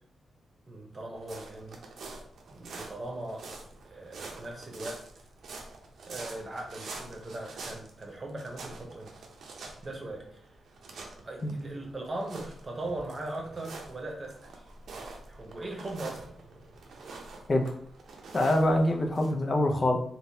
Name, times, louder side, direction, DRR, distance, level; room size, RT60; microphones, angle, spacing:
voice 1, 0.7-1.8 2.5-3.4 3.8-5.2 6.0-9.3 9.8-10.5 11.2-14.7 15.3-16.4, right 2 dB, 30° right, 0 dB, 0.9 m, -39 dB
sound 1, 1.2-19.3, right 3 dB, 75° right, 0.7 m, -46 dB
voice 2, 18.3-20.0, left 1 dB, 30° left, 3 dB, 0.6 m, -25 dB
3.7 x 2.7 x 2.7 m, 0.63 s
wide cardioid pair, 115°, 0 cm